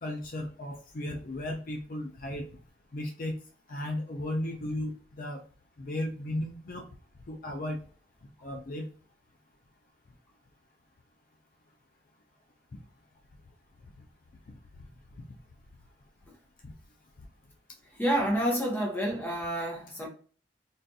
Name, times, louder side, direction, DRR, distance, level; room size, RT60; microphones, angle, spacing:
voice 1, 0.0-2.5 2.9-3.4 3.7-5.4 5.8-6.9 7.3-7.8 8.4-8.9 14.5-14.6 16.6-16.7, left 1 dB, 50° left, 0.5 m, -35 dB
voice 2, 17.9-20.1, right 1 dB, 10° left, 1.0 m, -29 dB
4.0 x 2.5 x 2.3 m
head